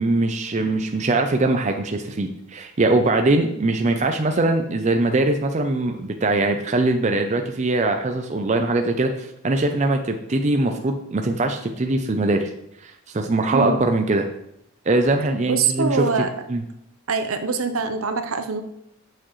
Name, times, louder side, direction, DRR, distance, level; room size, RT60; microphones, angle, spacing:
voice 1, 0.0-12.5 12.8-14.3 14.9-16.0 16.5-16.6, right 2 dB, 30° right, 5 dB, 0.5 m, -22 dB
voice 2, 15.5-16.3 17.1-18.6, right 5 dB, 70° right, 8 dB, 0.7 m, -23 dB
8.7 x 6.1 x 3.1 m, 0.80 s
head